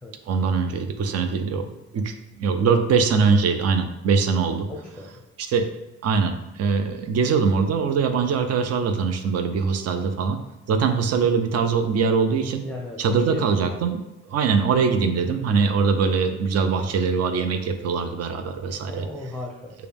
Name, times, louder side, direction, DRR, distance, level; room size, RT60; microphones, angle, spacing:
voice 1, 0.3-2.1 2.4-4.7 5.4-5.7 6.0-10.4 10.7-12.6 13.0-14.0 14.3-19.1, right 5 dB, 55° right, 7 dB, 0.5 m, -22 dB
voice 2, 4.7-5.1 12.6-13.5 18.9-19.7, left 2 dB, 5° left, 0 dB, 0.7 m, -35 dB
6.8 x 2.3 x 3.4 m, 0.98 s
cardioid pair, 90°, 30 cm